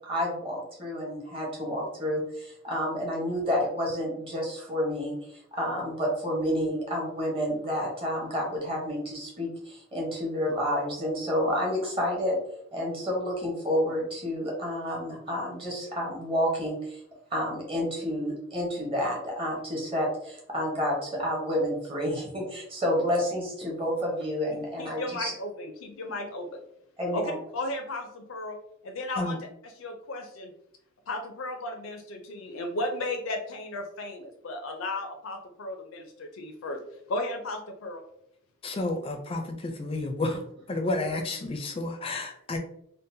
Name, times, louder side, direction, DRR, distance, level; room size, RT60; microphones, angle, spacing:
voice 1, 0.0-12.4 12.7-17.0 17.3-25.3 27.0-27.4 40.2-40.3, equal, 25° right, -3 dB, 1.0 m, -30 dB
voice 2, 24.5-26.6 27.1-28.6 28.8-30.5 31.1-36.8 37.1-38.0, left 2 dB, 85° left, 4 dB, 0.5 m, -35 dB
voice 3, 38.6-39.4 39.8-40.4 40.7-42.6, left 2 dB, 30° left, 4 dB, 0.4 m, -30 dB
3.8 x 2.1 x 2.6 m, 0.73 s
head